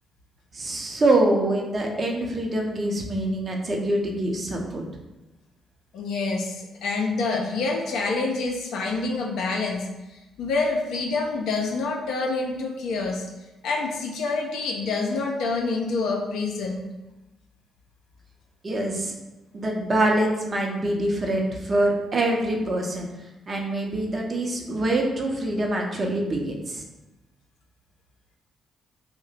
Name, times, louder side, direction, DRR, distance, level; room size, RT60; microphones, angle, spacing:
voice 1, 0.5-4.8 18.6-19.1 19.5-23.1 23.5-26.8, right 1 dB, 40° right, 0 dB, 0.7 m, -25 dB
voice 2, 5.9-9.8 10.4-13.3 13.6-16.9, left 3 dB, 65° left, 0 dB, 0.4 m, -27 dB
2.7 x 2.1 x 4.0 m, 1.0 s
figure-of-eight pair, 40°, 0 cm